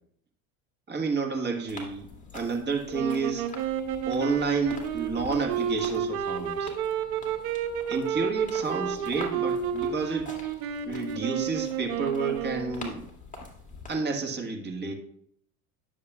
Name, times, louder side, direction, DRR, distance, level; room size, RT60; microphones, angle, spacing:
voice 1, 0.9-2.1 2.3-3.5 4.1-6.7 7.9-10.3 10.9-13.0 13.9-14.9, right 4 dB, 25° right, 3 dB, 1.6 m, -30 dB
sound 1, 1.7-13.9, left 3 dB, 15° left, 2.3 m, -46 dB
sound 2, 2.9-12.9, right 7 dB, 70° right, 1.1 m, -31 dB
10.5 x 7.1 x 2.4 m, 0.69 s
hypercardioid pair, 90°, 44 cm